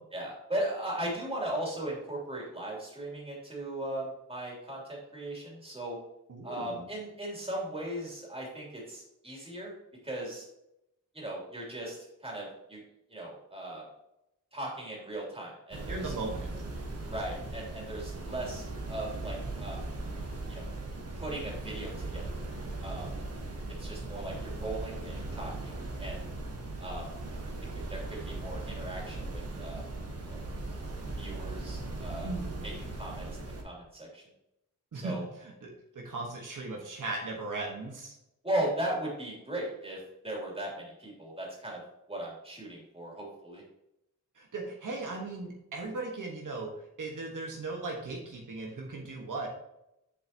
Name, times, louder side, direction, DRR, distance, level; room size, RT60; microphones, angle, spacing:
voice 1, 0.1-6.0 6.4-9.7 10.0-10.4 11.1-12.8 13.1-13.8 14.5-16.1 17.1-19.8 20.5-20.6 21.1-22.4 22.8-23.1 23.8-26.2 26.8-27.1 27.7-29.8 30.3-30.4 31.2-32.3 32.6-34.2 34.9-35.2 38.4-41.8 42.1-43.6, right 1 dB, 15° right, -3 dB, 3.1 m, -38 dB
voice 2, 6.3-6.9 15.9-16.5 32.2-32.7 34.9-38.1 44.3-46.7 47.0-49.5, right 3 dB, 70° right, -1 dB, 1.5 m, -38 dB
sound 1, 15.7-33.6, right 2 dB, 45° right, 1.4 m, -38 dB
7.9 x 7.0 x 2.9 m, 0.84 s
wide cardioid pair, 145°, 32 cm